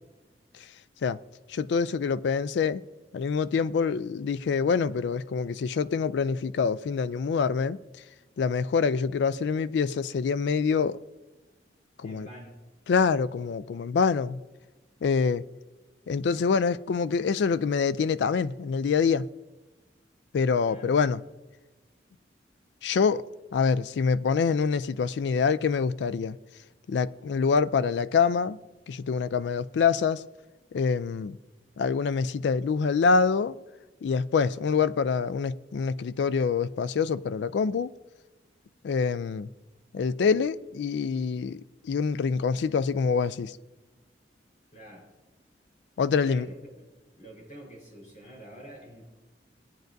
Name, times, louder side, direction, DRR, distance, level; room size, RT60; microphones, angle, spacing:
voice 1, 1.5-2.8 3.1-7.8 8.4-11.0 12.0-12.3 12.9-14.4 15.0-15.5 16.1-19.3 20.3-21.2 22.8-23.2 23.5-26.4 26.9-28.6 28.9-30.2 30.7-31.4 31.8-33.6 34.0-37.9 38.8-39.5 39.9-43.6 46.0-46.5, left 5 dB, 75° left, 0.3 m, -25 dB
voice 2, 12.0-12.6 20.6-21.0 44.7-45.0 46.1-46.9 47.2-49.1, right 1 dB, 45° left, 4.3 m, -47 dB
17.5 x 9.1 x 2.6 m
head